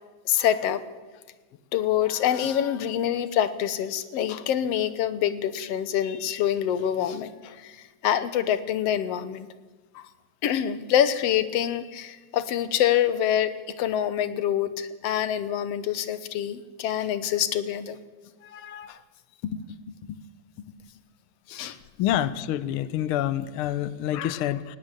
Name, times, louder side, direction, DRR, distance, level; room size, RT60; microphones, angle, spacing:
voice 1, 0.2-0.8 1.7-7.8 8.0-9.5 9.9-10.0 10.4-18.0 18.4-19.0 19.4-19.6 20.0-20.2 21.5-21.8, left 10 dB, 65° left, 13 dB, 1.8 m, -26 dB
voice 2, 22.0-24.8, left 11 dB, 85° left, 15 dB, 1.1 m, -27 dB
19.0 x 16.5 x 9.0 m, 1.3 s
omnidirectional pair, 3.5 m